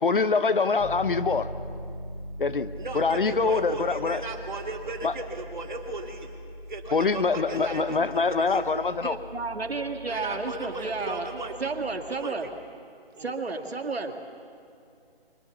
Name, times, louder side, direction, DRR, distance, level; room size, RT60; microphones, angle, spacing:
voice 1, 0.0-1.5 2.4-2.7 2.9-4.2 5.0-5.1 6.9-9.2, left 4 dB, 60° left, 13 dB, 1.0 m, -24 dB
Piano, 0.8-12.1, equal, 15° left, 0.9 m, -41 dB
voice 2, 2.8-6.3 6.7-8.7 10.1-11.7 12.1-12.4 13.1-13.3, right 3 dB, 50° right, 2 dB, 3.0 m, -36 dB
voice 3, 9.0-11.3 11.6-12.5 13.2-14.1, right 3 dB, 80° right, 5 dB, 2.2 m, -32 dB
24.5 x 22.5 x 7.2 m, 2.4 s
figure-of-eight pair, 175°, 30 cm